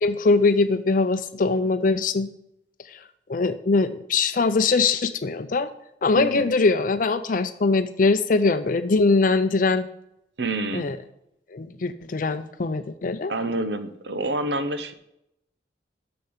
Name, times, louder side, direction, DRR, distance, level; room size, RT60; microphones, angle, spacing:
voice 1, 0.0-2.3 2.9-3.0 3.3-5.7 6.0-9.9 10.7-11.0 11.5-13.3, left 3 dB, 50° left, 11 dB, 0.5 m, -22 dB
voice 2, 6.1-6.5 10.4-10.9 13.3-14.9, right 2 dB, 80° right, 10 dB, 0.9 m, -27 dB
6.9 x 6.9 x 7.9 m, 0.80 s
head